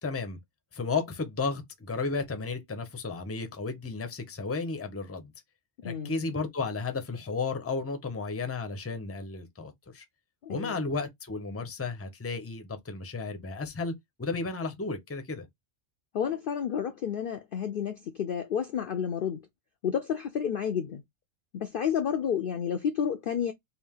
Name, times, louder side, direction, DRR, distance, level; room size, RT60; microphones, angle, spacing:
voice 1, 0.0-0.4 0.7-5.3 5.8-10.0 10.5-13.9 14.2-15.5, left 4 dB, 15° left, 0.5 m, -33 dB
voice 2, 5.8-6.2 10.4-10.8 16.1-19.4 19.8-21.0 21.5-23.5, left 8 dB, 60° left, 0.6 m, -30 dB
3.4 x 2.5 x 3.5 m
omnidirectional pair, 1.3 m